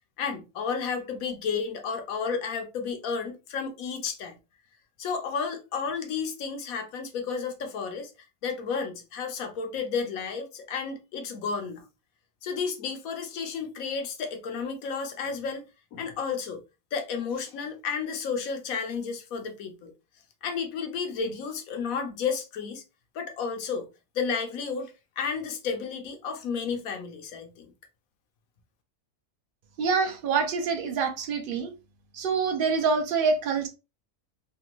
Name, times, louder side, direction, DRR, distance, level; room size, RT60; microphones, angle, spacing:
voice 1, 0.2-4.4 5.0-8.1 8.4-11.9 12.4-15.6 15.9-16.6 16.9-19.9 20.4-22.8 23.1-23.9 24.1-27.7, left 5 dB, 85° left, 1.2 m, -32 dB
voice 2, 29.8-31.7 32.1-33.7, right 5 dB, 50° right, 0.7 m, -26 dB
3.4 x 2.3 x 2.9 m
omnidirectional pair, 1.4 m